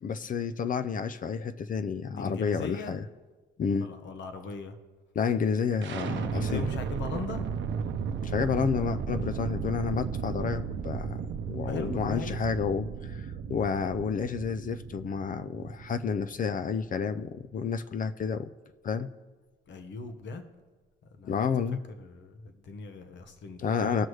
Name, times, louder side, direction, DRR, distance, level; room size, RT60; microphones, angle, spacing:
voice 1, 0.0-3.0 3.6-3.9 5.2-6.6 8.2-18.5 18.8-19.1 21.3-21.8 23.6-24.1, left 6 dB, 45° left, 11 dB, 0.5 m, -30 dB
voice 2, 2.1-3.0 3.8-4.8 6.2-7.5 11.6-12.4 19.7-20.4 21.1-21.4 22.0-24.1, left 3 dB, 65° left, 7 dB, 1.1 m, -38 dB
sound 1, 5.8-17.7, right 6 dB, 65° right, 0.7 m, -35 dB
18.5 x 6.2 x 3.2 m, 1.3 s
cardioid pair, 90°, 20 cm